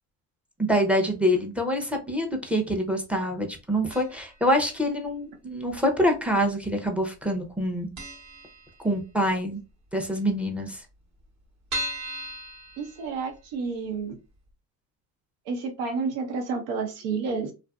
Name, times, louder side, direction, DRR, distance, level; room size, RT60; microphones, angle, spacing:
voice 1, 0.6-7.9 8.8-9.6 9.9-10.8, equal, 5° right, 3 dB, 0.5 m, -25 dB
sound 1, 3.9-4.4 4.7-4.8 5.7-6.4 6.7-6.9 7.2-7.3 7.6-7.7 8.0-9.3 9.7-9.8 10.0-10.1 10.3-10.4 10.9-13.5 14.0-14.1 14.5-14.6, equal, 40° right, 0.9 m, -37 dB
voice 2, 12.8-14.2 15.5-17.5, right 4 dB, 80° right, 4 dB, 0.9 m, -30 dB
2.7 x 2.5 x 2.2 m, 0.30 s
supercardioid pair, 100°, 44 cm